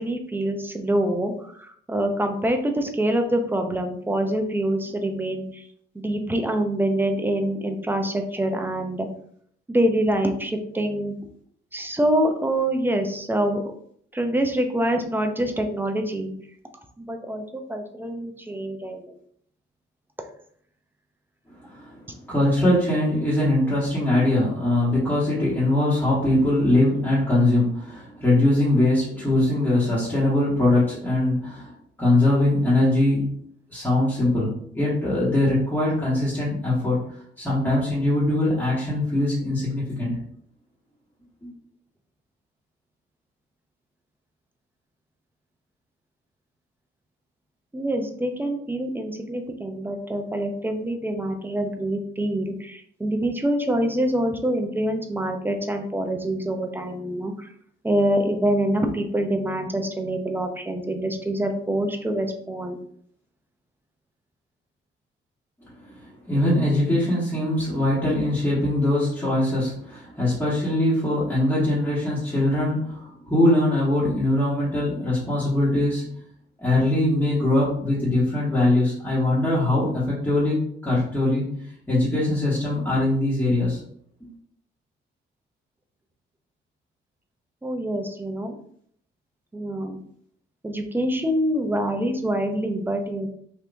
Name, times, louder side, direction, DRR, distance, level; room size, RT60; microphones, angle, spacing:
voice 1, 0.0-5.7 5.9-9.1 9.7-11.1 11.7-13.6 14.1-16.3 17.0-19.2 47.7-57.5 57.8-62.8 87.6-88.5 89.5-90.0 90.6-93.3, right 1 dB, 10° right, 4 dB, 0.5 m, -25 dB
voice 2, 21.6-22.0 22.2-31.7 32.0-33.3 33.7-37.0 37.4-40.2 41.4-41.5 66.0-76.1 76.6-81.5 81.9-83.8, left 1 dB, 10° left, -9 dB, 1.4 m, -22 dB
3.4 x 2.7 x 2.6 m, 0.64 s
cardioid pair, 90°, 20 cm